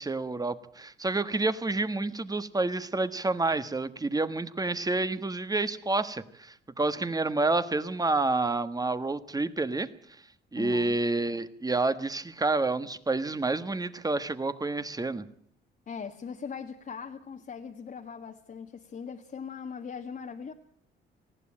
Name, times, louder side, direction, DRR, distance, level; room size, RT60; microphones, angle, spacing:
voice 1, 0.0-9.9 10.5-15.2, right 3 dB, 20° right, 1.4 m, -29 dB
voice 2, 10.6-11.0 15.9-20.5, left 6 dB, 45° left, 1.6 m, -40 dB
19.5 x 15.0 x 8.8 m
cardioid pair, 90°, 20 cm